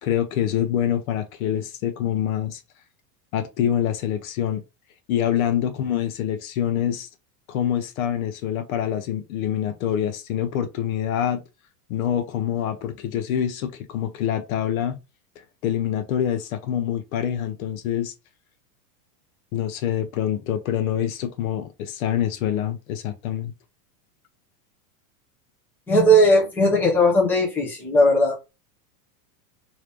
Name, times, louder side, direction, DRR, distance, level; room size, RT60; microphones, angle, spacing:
voice 1, 0.0-2.6 3.3-4.6 5.1-7.1 7.5-11.4 11.9-15.0 15.4-18.1 19.5-23.5, left 10 dB, 60° left, 0.7 m, -25 dB
voice 2, 25.9-28.5, equal, 5° left, 0.7 m, -18 dB
3.0 x 2.8 x 3.3 m
supercardioid pair, 165°, 47 cm